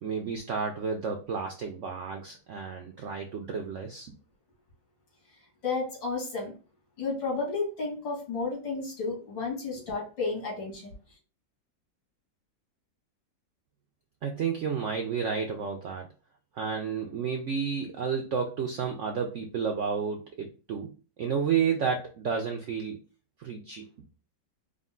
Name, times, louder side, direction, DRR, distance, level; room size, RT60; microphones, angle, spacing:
voice 1, 0.0-4.2 14.2-16.1 16.5-20.9 21.2-23.0 23.4-23.9, right 6 dB, 75° right, 4 dB, 0.6 m, -31 dB
voice 2, 5.6-6.5 7.0-10.9, left 3 dB, 90° left, -3 dB, 2.7 m, -32 dB
5.1 x 2.1 x 3.6 m, 0.35 s
omnidirectional pair, 1.9 m